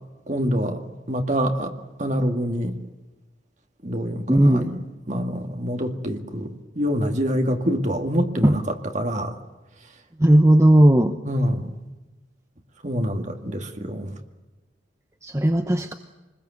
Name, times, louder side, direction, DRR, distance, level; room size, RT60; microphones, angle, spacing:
voice 1, 0.3-0.8 1.1-1.7 2.0-2.8 3.8-9.4 11.3-11.8 12.8-14.2, equal, 35° right, 5 dB, 2.2 m, -26 dB
voice 2, 4.3-4.7 8.4-8.5 10.2-11.1 15.2-15.9, right 1 dB, 15° right, 7 dB, 0.9 m, -16 dB
26.5 x 21.0 x 8.2 m, 1.1 s
head